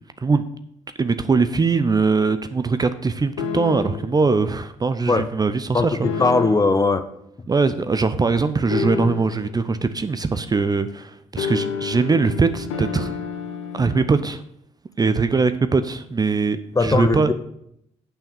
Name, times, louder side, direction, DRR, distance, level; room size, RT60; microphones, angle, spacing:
voice 1, 1.0-6.0 7.5-13.2 13.7-14.4 15.0-17.3, right 4 dB, 25° right, 11 dB, 0.6 m, -21 dB
sound 1, 3.4-4.2 6.0-6.8 8.7-9.5 11.4-14.0, left 6 dB, 85° left, 0.8 m, -29 dB
voice 2, 5.7-7.1 16.7-17.3, left 3 dB, 25° left, 11 dB, 0.9 m, -19 dB
6.9 x 5.7 x 7.1 m, 0.74 s
hypercardioid pair, 50°, 15 cm